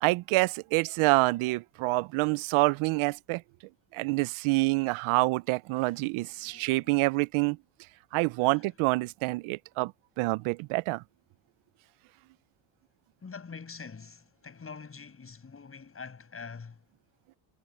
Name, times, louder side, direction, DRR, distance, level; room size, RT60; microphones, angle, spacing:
voice 1, 0.0-3.4 3.9-7.6 8.1-9.9 10.2-11.0, right 23 dB, 90° right, 0.6 m, -27 dB
voice 2, 6.2-6.9 8.4-8.7 13.2-16.9, left 5 dB, 25° left, 6.7 m, -45 dB
cardioid pair, 125°, 48 cm